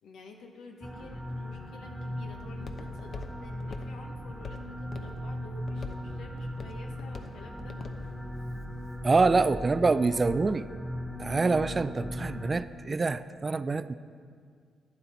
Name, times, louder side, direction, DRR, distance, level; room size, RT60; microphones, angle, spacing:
voice 1, 0.0-7.8, left 3 dB, 80° left, 2 dB, 1.1 m, -50 dB
sound 1, 0.8-12.5, equal, ahead, 0.6 m, -38 dB
Walk footsteps, 1.3-9.2, left 4 dB, 45° left, 0.9 m, -46 dB
voice 2, 9.0-10.7 11.2-14.0, right 3 dB, 30° right, 14 dB, 0.3 m, -26 dB
11.5 x 9.8 x 4.1 m, 2.1 s
cardioid pair, 90°, 0 cm